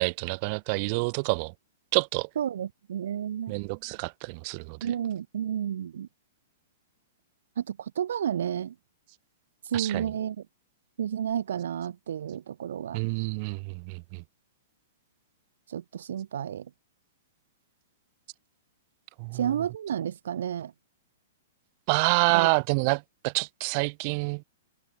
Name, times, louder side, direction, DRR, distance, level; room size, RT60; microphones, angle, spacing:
voice 1, 0.0-1.5 1.9-2.3 3.5-4.8 9.7-10.1 12.9-14.2 19.2-19.5 21.9-24.4, right 34 dB, 45° right, 2.7 m, -27 dB
voice 2, 2.4-3.5 4.8-6.1 7.6-8.7 9.6-10.4 11.0-13.0 15.7-16.7 19.3-20.7 22.3-22.5, right 9 dB, 70° right, 3.0 m, -31 dB
hypercardioid pair, 115°, 0 cm